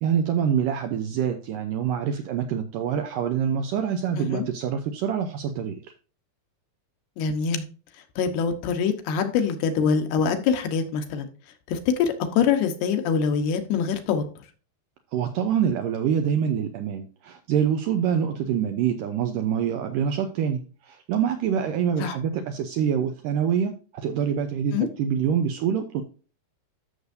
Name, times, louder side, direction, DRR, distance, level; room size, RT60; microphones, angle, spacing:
voice 1, 0.0-5.8 15.1-26.0, right 8 dB, 80° right, 2.0 m, -25 dB
voice 2, 7.2-7.6 8.2-11.3 11.7-14.3 22.0-22.2 24.7-24.9, left 6 dB, 80° left, 3.0 m, -24 dB
13.0 x 6.7 x 2.6 m
omnidirectional pair, 4.6 m